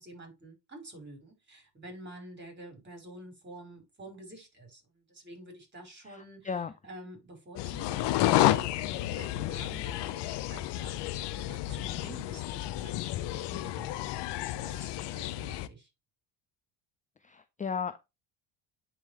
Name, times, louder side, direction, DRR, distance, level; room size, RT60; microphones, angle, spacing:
voice 1, 0.0-14.1 14.4-15.9, right 1 dB, 25° right, 4.8 m, -49 dB
voice 2, 6.1-6.7 17.2-18.1, left 6 dB, 15° left, 0.5 m, -36 dB
sound 1, 7.6-15.7, left 15 dB, 65° left, 0.8 m, -31 dB
10.5 x 4.0 x 3.1 m
supercardioid pair, 90°, 44 cm